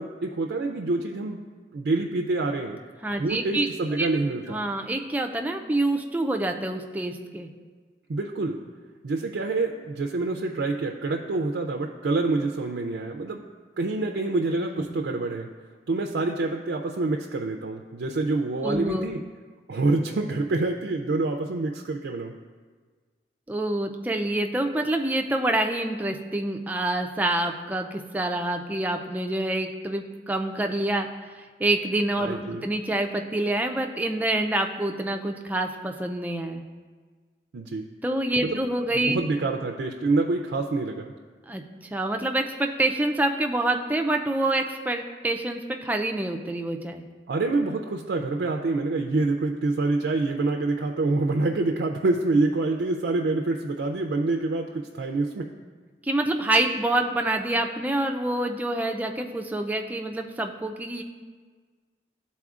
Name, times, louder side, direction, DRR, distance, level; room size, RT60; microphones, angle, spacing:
voice 1, 0.0-1.4 1.7-2.8 3.2-4.6 8.1-8.6 9.0-13.4 13.8-15.5 15.9-19.2 19.7-22.3 32.3-32.6 37.5-37.8 38.4-38.7 38.9-41.1 47.3-55.5, right 3 dB, 80° right, 3 dB, 0.4 m, -26 dB
voice 2, 3.0-3.7 4.0-4.1 4.5-7.5 14.8-14.9 18.6-19.1 23.5-31.1 31.6-36.6 38.0-39.2 41.5-47.0 56.0-61.0, right 1 dB, 10° right, 4 dB, 0.3 m, -27 dB
12.5 x 4.2 x 2.4 m, 1.5 s
head